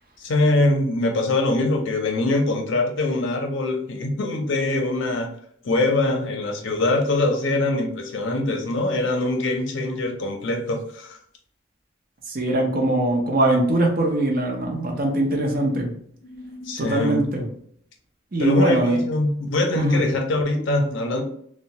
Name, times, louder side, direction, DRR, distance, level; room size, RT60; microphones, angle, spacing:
voice 1, 0.2-5.3 5.6-11.2 16.3-17.2 18.4-21.2, left 2 dB, 70° left, 3 dB, 0.6 m, -23 dB
voice 2, 12.3-15.9 16.8-17.5 18.3-19.0 19.8-20.0, right 1 dB, 45° right, 1 dB, 0.6 m, -21 dB
2.9 x 2.1 x 2.8 m, 0.65 s
head